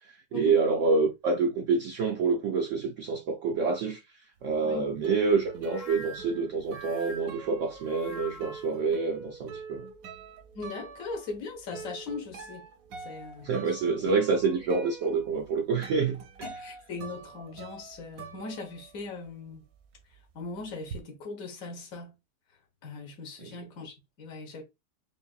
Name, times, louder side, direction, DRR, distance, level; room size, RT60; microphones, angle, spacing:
voice 1, 0.0-4.0 4.4-9.9 13.4-16.2 23.4-23.5, right 4 dB, 85° right, 0.6 m, -27 dB
sound 1, 4.5-19.3 19.6-21.0, right 5 dB, 65° right, 0.9 m, -45 dB
sound 2, 5.6-8.7, left 1 dB, 75° left, 1.8 m, -45 dB
voice 2, 10.5-12.7 13.0-14.1 16.4-19.6 20.3-22.1 22.8-24.6, left 3 dB, 55° left, 1.5 m, -40 dB
5.1 x 2.6 x 2.4 m
omnidirectional pair, 1.9 m